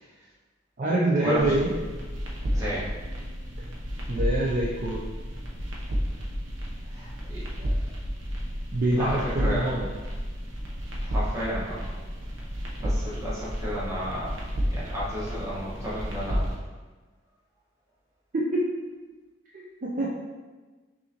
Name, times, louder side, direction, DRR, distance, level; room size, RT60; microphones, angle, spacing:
voice 1, 0.8-1.7 4.1-5.0 8.7-9.9 18.3-18.7 19.5-20.1, right 1 dB, 45° right, -5 dB, 0.5 m, -25 dB
sound 1, 1.4-16.6, equal, 85° right, 0.8 m, -31 dB
voice 2, 2.5-2.9 6.9-7.1 7.3-7.4 9.0-9.6 11.1-11.8 12.8-14.3 14.7-16.4, equal, 15° right, -8 dB, 1.2 m, -32 dB
5.6 x 2.6 x 2.8 m, 1.3 s
head